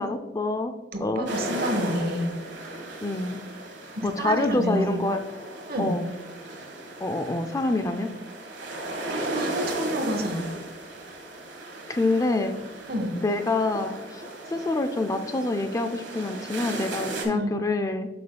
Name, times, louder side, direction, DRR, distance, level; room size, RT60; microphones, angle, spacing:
voice 1, 0.0-0.7 1.0-1.3 3.0-3.4 4.0-5.2 5.8-6.1 7.0-8.1 11.9-12.6 13.2-14.2 14.5-18.1, left 2 dB, 20° left, 8 dB, 0.4 m, -26 dB
voice 2, 0.9-2.3 3.9-5.0 5.7-5.9 9.1-10.4 12.9-13.2 17.2-17.5, equal, 55° right, 5 dB, 1.1 m, -29 dB
sound 1, 1.3-17.2, right 1 dB, 70° right, 1.5 m, -36 dB
8.3 x 6.8 x 2.2 m, 1.2 s
head